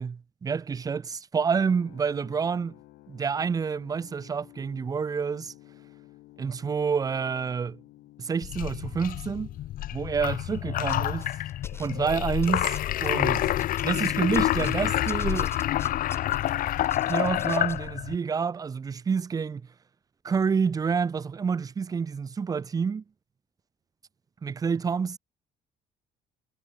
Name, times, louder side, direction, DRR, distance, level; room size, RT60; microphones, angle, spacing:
voice 1, 0.0-2.7 3.1-5.5 6.4-7.8 8.2-9.6 9.9-11.3 11.7-13.5 13.8-15.5 17.1-19.6 20.2-23.0 24.4-25.2, right 6 dB, 20° right, 0.4 m, -28 dB
sound 1, 1.7-17.6, left 18 dB, 85° left, 3.9 m, -55 dB
sound 2, 8.4-18.2, left 13 dB, 55° left, 0.6 m, -28 dB
sound 3, 10.9-12.1 12.4-14.8 15.1-17.8, left 2 dB, 15° left, 6.8 m, -46 dB
cardioid pair, 110°, 17 cm